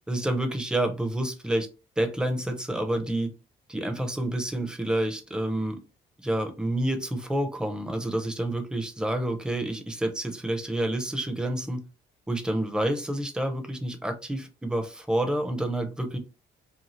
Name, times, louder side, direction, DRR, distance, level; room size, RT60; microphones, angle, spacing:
voice 1, 0.1-1.7 2.0-3.3 3.7-5.8 6.2-11.8 12.3-16.2, right 1 dB, 5° right, 5 dB, 0.6 m, -28 dB
2.7 x 2.3 x 3.0 m, 0.30 s
cardioid pair, 90°, 20 cm